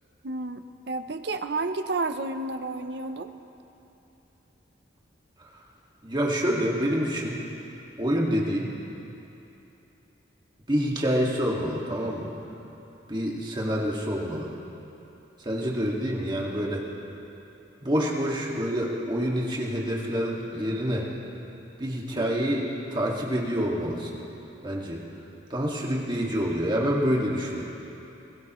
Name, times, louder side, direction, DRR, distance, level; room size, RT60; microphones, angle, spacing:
voice 1, 0.2-3.3 22.1-22.3, right 3 dB, 60° right, 9 dB, 0.7 m, -31 dB
voice 2, 6.0-7.4 8.0-8.7 10.7-12.3 13.1-14.5 15.4-16.8 17.8-21.1 21.8-24.2 24.6-25.0 25.5-27.6, equal, 25° right, -3 dB, 2.0 m, -27 dB
25.5 x 17.5 x 3.1 m, 2.9 s
head